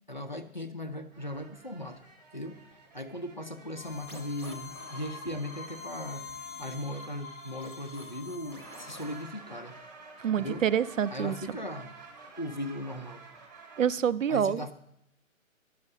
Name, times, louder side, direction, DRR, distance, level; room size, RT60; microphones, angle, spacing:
voice 1, 0.1-2.0 2.3-2.6 2.9-6.3 6.6-9.8 10.4-10.6 11.1-12.0 12.4-13.2 14.3-14.7, left 1 dB, 35° left, 8 dB, 0.5 m, -38 dB
sound 1, 1.1-8.1 8.4-13.9, right 4 dB, 10° right, 1.1 m, -52 dB
sound 2, 3.8-9.3, left 4 dB, 20° left, 0.8 m, -45 dB
voice 2, 10.2-11.4 13.8-14.6, right 8 dB, 65° right, 17 dB, 0.5 m, -27 dB
11.0 x 6.3 x 6.4 m, 0.80 s
hypercardioid pair, 175°, 42 cm